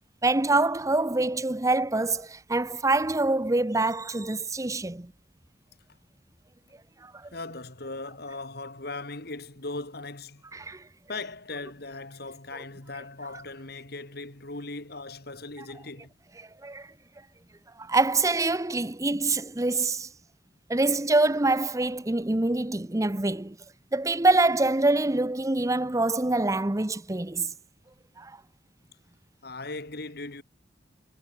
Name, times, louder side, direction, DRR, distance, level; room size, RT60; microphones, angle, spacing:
voice 1, 0.2-5.1 7.0-7.3 10.5-10.8 16.6-16.9 17.8-20.1 20.7-23.6 23.9-27.5 28.2-28.4, right 2 dB, 15° right, 0.8 m, -25 dB
voice 2, 7.3-10.4 11.1-16.1 29.4-30.4, left 3 dB, 55° left, 2.8 m, -38 dB
head